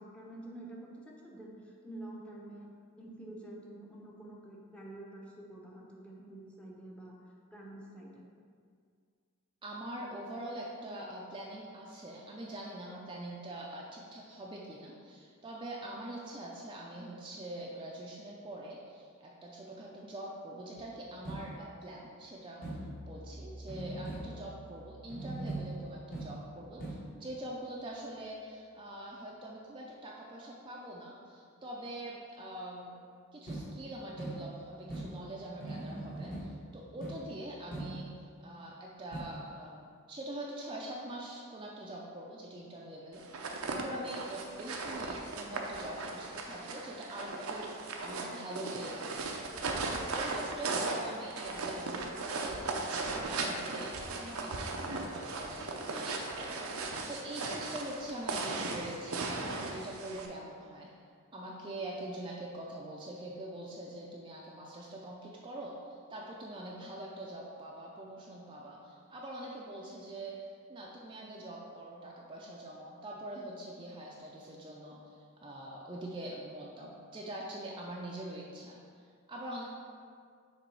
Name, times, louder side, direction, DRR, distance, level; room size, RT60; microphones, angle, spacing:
voice 1, 0.0-2.7 3.0-7.1 7.5-8.3, right 1 dB, 5° left, -3 dB, 0.8 m, -48 dB
voice 2, 9.6-33.0 33.3-60.9 61.3-79.6, right 1 dB, 25° right, -3 dB, 0.5 m, -44 dB
sound 1, 20.8-22.0 22.6-23.3 23.7-24.8 25.1-27.3 33.5-38.3 39.1-39.2, right 2 dB, 40° left, 1.4 m, -42 dB
sound 2, 22.6-28.0, right 1 dB, 90° left, 0.6 m, -52 dB
sound 3, 43.2-60.3, right 3 dB, 85° right, 0.6 m, -37 dB
6.8 x 3.3 x 4.7 m, 2.2 s
head